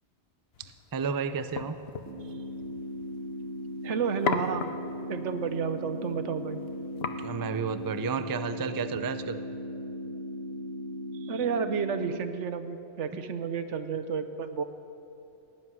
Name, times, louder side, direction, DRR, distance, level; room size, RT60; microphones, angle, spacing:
sound 1, 0.5-8.3, left 5 dB, 65° left, 1.0 m, -39 dB
voice 1, 0.6-1.8 7.2-9.4 11.2-11.4, right 5 dB, 35° right, 11 dB, 0.3 m, -32 dB
sound 2, 2.1-12.1, equal, 55° right, 4.3 m, -38 dB
voice 2, 3.8-4.6 5.1-6.6 11.3-14.6, right 6 dB, 85° right, 9 dB, 1.2 m, -31 dB
18.0 x 7.5 x 9.6 m, 2.8 s
omnidirectional pair, 1.2 m